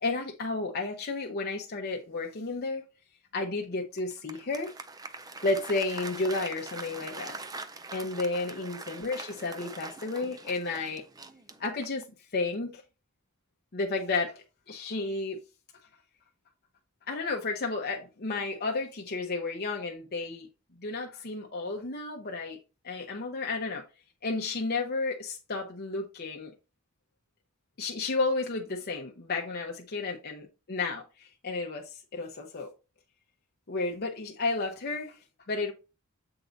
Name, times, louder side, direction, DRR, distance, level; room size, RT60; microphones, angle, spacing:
voice 1, 0.0-2.9 3.3-4.7 5.4-7.4 7.9-11.0 11.6-12.1 12.3-12.8 13.7-14.3 14.7-15.4 17.1-20.5 20.8-22.6 22.8-23.8 24.2-26.5 27.8-32.7 33.7-35.2 35.5-35.7, left 3 dB, 50° left, 0.8 m, -32 dB
Applause, 4.0-12.1, right 3 dB, 20° right, 0.5 m, -43 dB
8.0 x 3.9 x 4.0 m
head